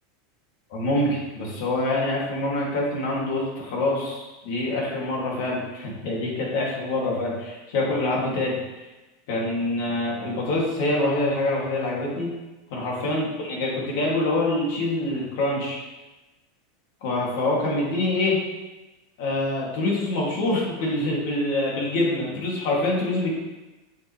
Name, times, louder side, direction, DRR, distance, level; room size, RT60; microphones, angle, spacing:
voice 1, 0.7-8.6 9.3-12.3 12.7-15.8 17.0-18.4 19.2-23.3, left 2 dB, 65° left, -3 dB, 2.8 m, -25 dB
7.2 x 7.1 x 3.4 m, 1.1 s
supercardioid pair, 155°, 0 cm